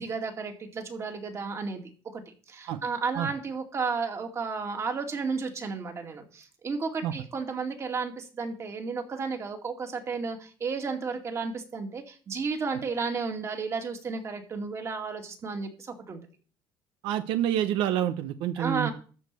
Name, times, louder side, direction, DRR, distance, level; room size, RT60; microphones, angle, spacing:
voice 1, 0.0-16.2 18.6-18.9, right 4 dB, 35° right, 4 dB, 2.3 m, -33 dB
voice 2, 17.0-18.9, right 11 dB, 90° right, 11 dB, 0.8 m, -28 dB
13.0 x 4.8 x 8.3 m, 0.39 s
cardioid pair, 125°, 8 cm